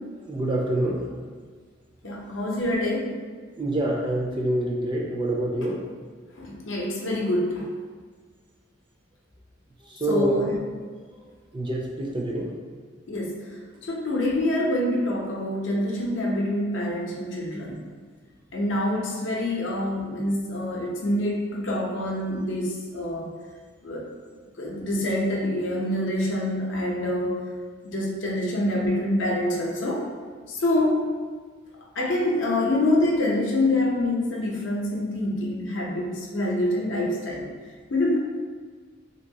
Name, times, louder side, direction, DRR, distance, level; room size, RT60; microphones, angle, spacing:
voice 1, 0.2-1.1 3.6-5.8 9.8-10.5 11.5-12.5, right 1 dB, 25° right, -2 dB, 0.4 m, -26 dB
voice 2, 2.0-3.1 6.4-7.7 10.1-10.6 13.1-13.4 13.8-17.8 18.5-23.3 23.8-24.0 24.6-27.4 27.8-30.1 30.5-31.0 32.0-37.5 37.9-38.2, left 1 dB, 70° left, -2 dB, 0.6 m, -26 dB
3.0 x 2.9 x 2.7 m, 1.5 s
head